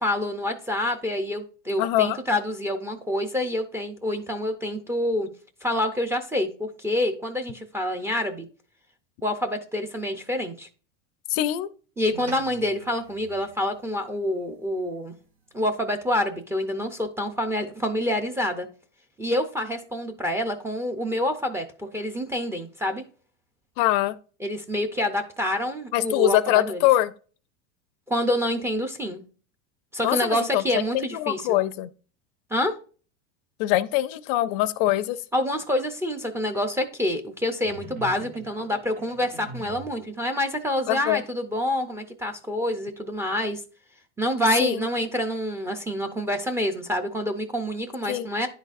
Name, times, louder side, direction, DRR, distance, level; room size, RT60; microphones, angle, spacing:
voice 1, 0.0-5.3 5.6-8.5 9.2-10.7 12.0-15.1 15.5-18.7 19.2-23.0 24.4-26.8 28.1-29.2 29.9-31.6 32.5-32.7 35.3-43.6 44.2-48.5, left 1 dB, 10° right, 0.4 m, -27 dB
voice 2, 1.8-2.2 11.3-11.7 23.8-24.1 25.9-27.1 30.0-30.6 30.9-31.9 33.6-35.2 40.9-41.2 44.6-44.8 48.1-48.3, left 14 dB, 55° left, 0.4 m, -23 dB
sound 1, 12.1-16.7, right 3 dB, 60° right, 1.9 m, -49 dB
sound 2, 37.6-40.0, right 2 dB, 80° right, 1.4 m, -43 dB
10.5 x 4.0 x 2.4 m
supercardioid pair, 125°, 35 cm